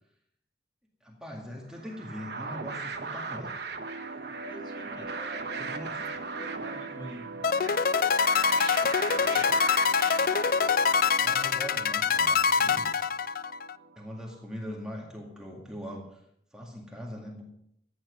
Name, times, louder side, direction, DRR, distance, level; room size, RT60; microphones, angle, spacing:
voice 1, 1.0-3.6 4.9-5.0 5.6-6.1 9.3-9.5 11.2-12.9 14.0-16.2 16.5-17.4, equal, 5° right, -2 dB, 2.0 m, -41 dB
sound 1, 1.7-11.1, right 4 dB, 60° right, 1.1 m, -39 dB
sound 2, 3.8-14.8, right 4 dB, 80° right, 1.7 m, -42 dB
voice 2, 4.2-5.8 6.3-7.4, equal, 25° left, 1 dB, 2.6 m, -46 dB
sound 3, 7.4-13.7, left 6 dB, 50° left, 0.4 m, -25 dB
14.5 x 9.5 x 6.5 m, 0.72 s
head